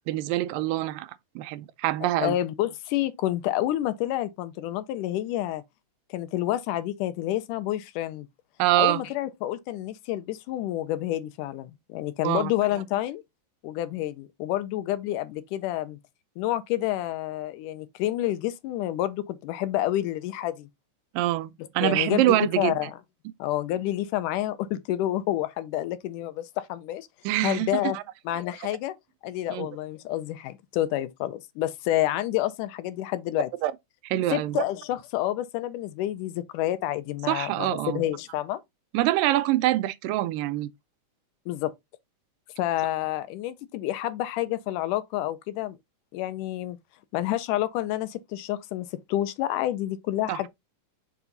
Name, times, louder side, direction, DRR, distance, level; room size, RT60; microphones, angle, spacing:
voice 1, 0.1-1.1 1.4-2.3 8.6-9.1 12.2-12.5 21.1-22.8 27.3-28.0 29.5-29.7 33.6-33.7 34.0-34.6 37.3-38.0 38.9-40.7 50.3-50.4, right 15 dB, 90° right, 2.3 m, -25 dB
voice 2, 2.0-5.6 6.1-8.3 8.8-13.2 13.6-16.0 16.4-20.7 21.8-23.0 23.4-27.1 27.4-28.0 28.3-28.9 29.2-33.5 34.3-38.6 41.5-41.7 42.6-45.8 46.1-46.8 47.1-50.5, left 14 dB, 80° left, 2.1 m, -29 dB
5.3 x 4.8 x 3.9 m
omnidirectional pair, 3.8 m